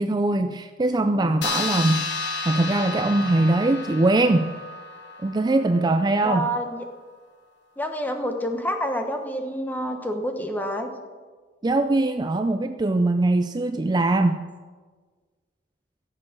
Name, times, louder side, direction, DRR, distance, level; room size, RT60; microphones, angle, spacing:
voice 1, 0.0-2.1 2.5-4.5 5.2-6.5 11.6-14.4, right 2 dB, 25° right, 8 dB, 0.4 m, -21 dB
sound 1, 1.4-6.3, left 3 dB, 80° left, 1.3 m, -32 dB
voice 2, 6.2-6.8 7.8-10.9, equal, 10° left, 5 dB, 1.1 m, -28 dB
15.0 x 7.7 x 6.1 m, 1.5 s
head